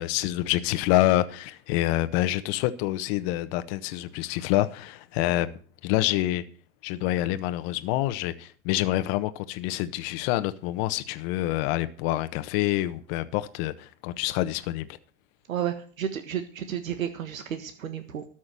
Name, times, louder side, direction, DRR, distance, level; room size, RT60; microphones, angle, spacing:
voice 1, 0.0-5.5 5.8-6.4 6.8-14.9, left 15 dB, 50° left, 1.1 m, -27 dB
voice 2, 15.5-18.3, right 9 dB, 85° right, 1.5 m, -32 dB
13.0 x 6.3 x 7.6 m
hypercardioid pair, 115°, 39 cm